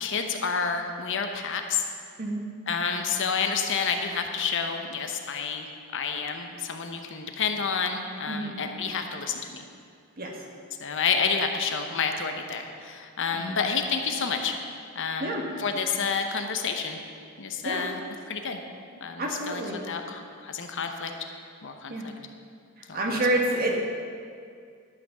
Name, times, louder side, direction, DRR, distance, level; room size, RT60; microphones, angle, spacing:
voice 1, 0.0-1.8 2.7-5.7 5.9-9.6 10.8-14.5 14.9-17.0 17.4-18.0 18.3-18.6 19.0-21.1 21.6-22.1 22.9-23.2, left 5 dB, 55° left, 5 dB, 0.8 m, -29 dB
voice 2, 19.2-19.8 21.9-22.1 22.9-23.7, right 1 dB, 40° right, 0 dB, 1.5 m, -28 dB
11.5 x 5.8 x 6.6 m, 2.3 s
head